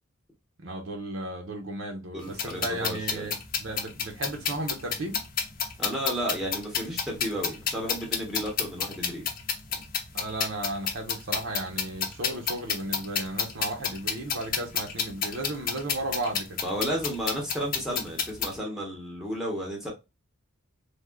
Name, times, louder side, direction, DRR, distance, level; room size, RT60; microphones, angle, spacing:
voice 1, 0.6-5.2 10.1-16.6, right 2 dB, 65° right, 0.8 m, -34 dB
voice 2, 2.1-3.3 5.8-9.3 16.6-19.9, equal, ahead, 0.8 m, -33 dB
sound 1, 2.2-18.6, left 7 dB, 40° left, 0.6 m, -31 dB
3.5 x 2.3 x 2.3 m
head